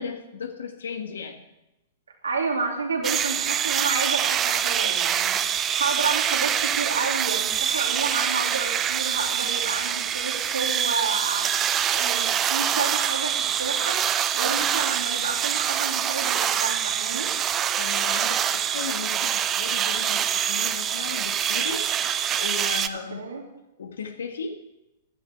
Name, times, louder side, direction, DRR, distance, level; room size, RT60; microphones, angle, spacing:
voice 1, 0.0-1.4 17.8-21.9 22.3-23.3 23.8-24.6, left 5 dB, 70° left, 7 dB, 1.7 m, -36 dB
voice 2, 2.2-5.5 5.8-11.6 11.9-17.3 23.1-23.4, right 4 dB, 80° right, 1 dB, 3.0 m, -30 dB
sound 1, 3.0-22.9, right 9 dB, 25° right, 0.7 m, -25 dB
15.5 x 11.5 x 4.7 m, 0.94 s
figure-of-eight pair, 105°, 0 cm